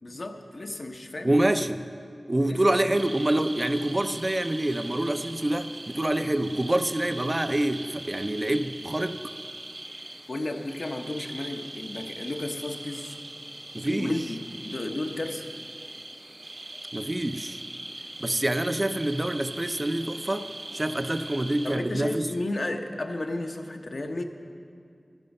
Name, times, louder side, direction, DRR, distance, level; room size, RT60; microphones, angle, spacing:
voice 1, 0.0-1.3 2.5-2.7 10.3-13.1 13.9-15.4 21.6-24.2, left 2 dB, 65° left, 4 dB, 0.8 m, -33 dB
voice 2, 1.2-1.9 2.3-9.2 13.7-14.1 16.9-17.6 18.2-22.3, right 1 dB, 30° right, 9 dB, 0.5 m, -26 dB
sound 1, 2.9-21.8, right 1 dB, 60° right, 1.2 m, -41 dB
12.0 x 10.5 x 5.3 m, 2.3 s
wide cardioid pair, 50°, 0 cm